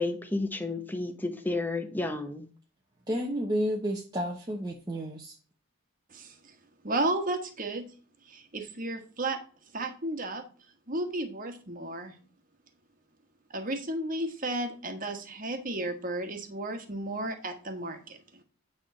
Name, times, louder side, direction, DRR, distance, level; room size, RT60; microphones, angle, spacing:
voice 1, 0.0-2.5, left 2 dB, 10° left, 6 dB, 1.0 m, -31 dB
voice 2, 3.1-5.4, equal, 20° right, 0 dB, 1.0 m, -31 dB
voice 3, 6.1-6.5 6.8-7.9 8.3-9.4 9.7-10.4 10.9-12.1 13.5-18.2, right 2 dB, 40° right, 6 dB, 1.4 m, -33 dB
9.3 x 3.6 x 6.2 m, 0.39 s
head